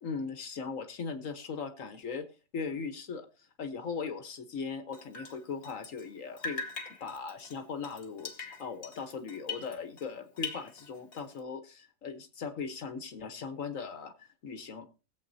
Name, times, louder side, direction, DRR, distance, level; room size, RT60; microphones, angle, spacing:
voice 1, 0.0-2.3 2.5-6.6 7.0-14.9, left 5 dB, 65° left, 7 dB, 1.5 m, -39 dB
Drip, 4.9-6.1 6.4-10.1 10.4-11.4, left 4 dB, 45° left, 1.4 m, -42 dB
20.5 x 7.7 x 2.7 m, 0.33 s
omnidirectional pair, 1.5 m